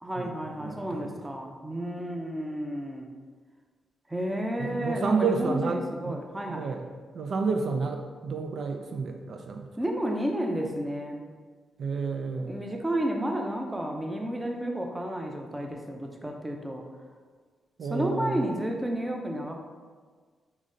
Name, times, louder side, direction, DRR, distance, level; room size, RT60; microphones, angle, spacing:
voice 1, 0.0-3.1 4.1-6.7 9.8-11.3 12.5-16.8 17.9-19.6, right 1 dB, 15° right, 2 dB, 0.6 m, -31 dB
voice 2, 0.6-1.2 4.6-6.2 6.5-6.9 7.1-9.7 11.8-12.6 17.8-18.5, right 4 dB, 65° right, 4 dB, 0.3 m, -30 dB
3.9 x 3.1 x 3.8 m, 1.5 s
cardioid pair, 80°, 0 cm